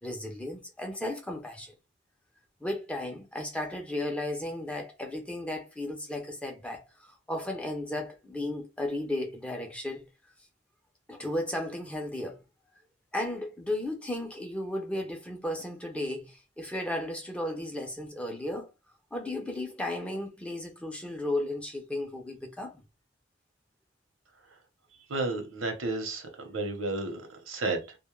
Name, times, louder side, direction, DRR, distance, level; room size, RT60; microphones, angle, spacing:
voice 1, 0.0-1.7 2.6-10.1 11.1-12.4 13.1-18.7 19.1-22.8, left 1 dB, 5° left, 0.4 m, -34 dB
voice 2, 25.1-28.0, right 2 dB, 85° right, 0.7 m, -32 dB
2.1 x 2.0 x 3.0 m
head